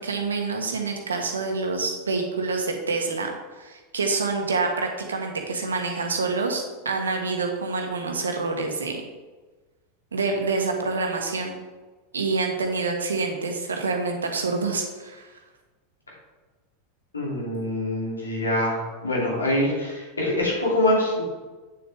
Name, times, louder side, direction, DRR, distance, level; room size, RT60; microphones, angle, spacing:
voice 1, 0.0-3.3 3.6-9.0 10.1-11.5 12.1-15.3, right 4 dB, 75° right, 3 dB, 1.3 m, -27 dB
voice 2, 17.1-21.2, left 1 dB, 80° left, -3 dB, 2.6 m, -24 dB
8.4 x 7.1 x 3.5 m, 1.3 s
figure-of-eight pair, 85°, 0 cm